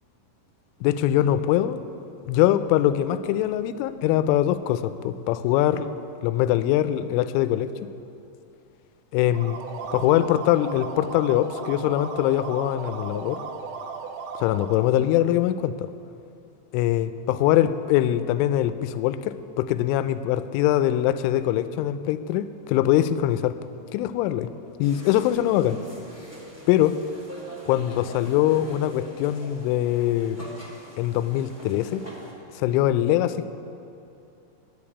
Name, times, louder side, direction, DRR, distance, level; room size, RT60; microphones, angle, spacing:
voice 1, 0.8-1.8 2.3-5.9 6.2-7.9 9.1-9.6 9.9-13.4 14.4-15.9 16.7-23.6 23.9-24.5 24.8-25.8 26.7-27.0 27.7-30.5 31.0-32.1 32.6-33.5, left 12 dB, 90° left, 12 dB, 3.1 m, -23 dB
sound 1, 9.2-14.9, right 4 dB, 75° right, 3.2 m, -36 dB
sound 2, 24.8-32.3, right 1 dB, 25° right, 1.1 m, -43 dB
10.5 x 10.5 x 9.7 m, 2.7 s
omnidirectional pair, 5.5 m